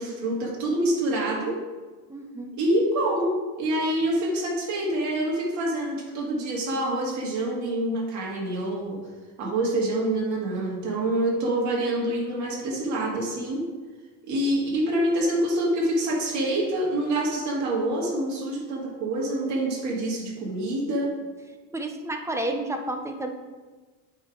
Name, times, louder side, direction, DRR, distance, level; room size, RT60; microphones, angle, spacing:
voice 1, 0.0-1.6 2.6-9.0 9.4-13.6 14.2-21.1, right 1 dB, 50° right, -3 dB, 2.0 m, -26 dB
voice 2, 2.1-2.5 21.7-23.3, right 1 dB, 10° right, 4 dB, 0.4 m, -31 dB
8.8 x 3.8 x 4.8 m, 1.3 s
cardioid pair, 155°, 36 cm